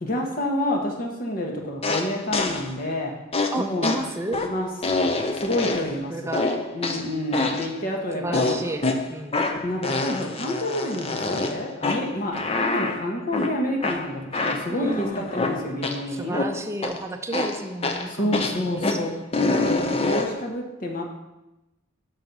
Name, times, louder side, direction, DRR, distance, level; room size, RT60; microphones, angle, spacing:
voice 1, 0.0-3.1 3.6-3.9 4.4-4.7 5.0-6.4 6.7-8.7 9.6-16.4 18.1-21.0, left 1 dB, 45° left, 1 dB, 1.2 m, -29 dB
sound 1, 1.8-2.7 3.3-6.0 6.3-7.8 8.3-16.0 16.3-17.0 17.3-20.4, left 3 dB, 30° left, 0.6 m, -26 dB
voice 2, 3.5-4.4 6.1-6.5 8.1-9.4 14.7-15.3 16.1-19.9, right 1 dB, 15° right, 5 dB, 0.6 m, -32 dB
6.4 x 5.9 x 5.4 m, 0.95 s
head